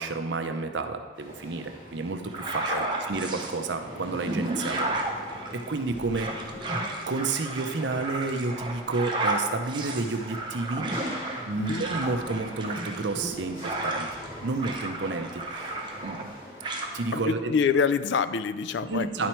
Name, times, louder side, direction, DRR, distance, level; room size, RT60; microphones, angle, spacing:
voice 1, 0.0-4.9 5.5-6.3 7.1-10.9 11.5-14.1 14.4-16.3 16.9-17.5 18.9-19.3, right 3 dB, 85° right, 6 dB, 0.7 m, -31 dB
sound 1, 1.1-17.2, equal, 45° left, 2.6 m, -44 dB
sound 2, 2.3-3.5 4.0-14.3 14.6-16.3 16.6-16.9, right 2 dB, 25° right, 0.8 m, -33 dB
voice 2, 17.1-19.3, left 5 dB, 80° left, 12 dB, 0.4 m, -26 dB
10.5 x 4.3 x 4.5 m, 1.4 s
head